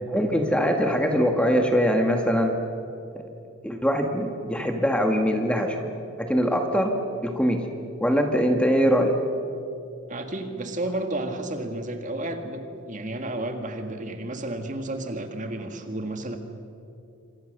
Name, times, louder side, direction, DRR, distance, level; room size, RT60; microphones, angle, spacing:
voice 1, 0.1-2.6 3.6-5.9 6.2-6.9 7.2-7.7 8.0-9.2, equal, 5° left, 3 dB, 1.8 m, -22 dB
voice 2, 10.1-16.4, right 1 dB, 35° right, 5 dB, 2.0 m, -32 dB
27.0 x 26.5 x 6.7 m, 2.6 s
head